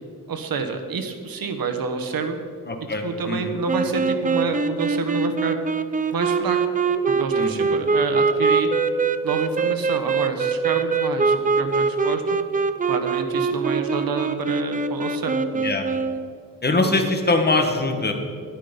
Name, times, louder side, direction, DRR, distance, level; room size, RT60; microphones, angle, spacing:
voice 1, 0.3-2.4 3.0-5.6 6.1-6.6 7.1-8.7 9.2-12.2 12.9-15.4, right 5 dB, 80° right, 7 dB, 1.3 m, -28 dB
voice 2, 2.7-3.5 7.3-7.7 15.5-15.9 16.6-18.1, left 2 dB, 30° left, 4 dB, 1.3 m, -22 dB
sound 1, 3.7-16.3, right 4 dB, 25° right, 0.5 m, -23 dB
12.0 x 10.5 x 5.3 m, 2.2 s
wide cardioid pair, 155°, 35 cm